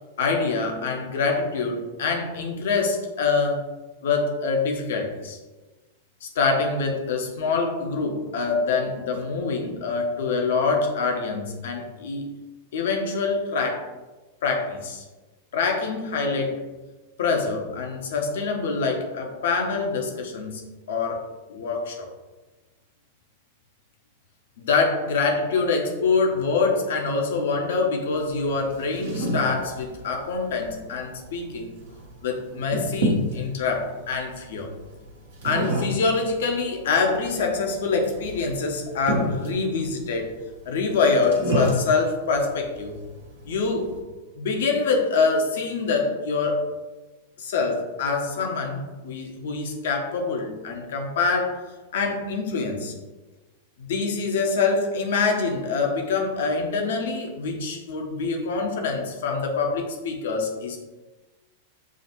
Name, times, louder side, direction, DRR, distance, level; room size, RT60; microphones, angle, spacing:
voice 1, 0.2-3.6 4.0-5.4 6.2-12.3 12.7-13.9 14.4-15.0 15.5-16.6 17.2-22.1 24.6-31.8 32.2-34.7 35.4-40.3 40.7-43.0 43.5-43.9 44.4-46.6 47.4-51.6 51.9-52.9 53.8-60.8, left 4 dB, 65° left, 2 dB, 0.8 m, -25 dB
sound 1, 28.1-44.0, equal, 70° right, 1.2 m, -31 dB
7.2 x 2.5 x 2.9 m, 1.2 s
figure-of-eight pair, 95°, 0 cm